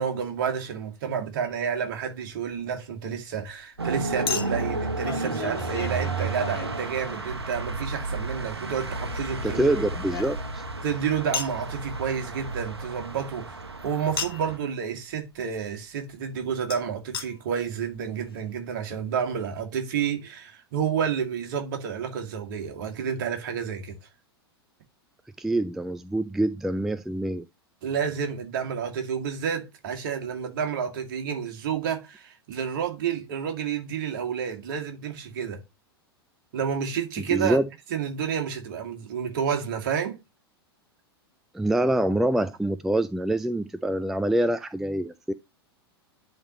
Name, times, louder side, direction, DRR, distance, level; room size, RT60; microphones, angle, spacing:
voice 1, 0.0-9.7 10.8-13.6 13.8-24.0 27.8-35.6 36.5-37.6 37.9-40.2, right 7 dB, 50° right, 2.0 m, -30 dB
Chink clink, 1.4-1.6 4.3-7.4 9.0-10.7 11.3-11.6 14.2-14.6 16.7-16.8 17.1-17.3 17.9-18.0 18.2-18.3, left 7 dB, 65° left, 1.2 m, -35 dB
sound 1, 3.8-14.6, right 3 dB, 80° right, 1.1 m, -32 dB
voice 2, 9.4-10.7 25.4-27.4 37.3-37.7 41.5-45.3, right 1 dB, ahead, 0.3 m, -25 dB
11.0 x 3.7 x 3.0 m
figure-of-eight pair, 95°, 13 cm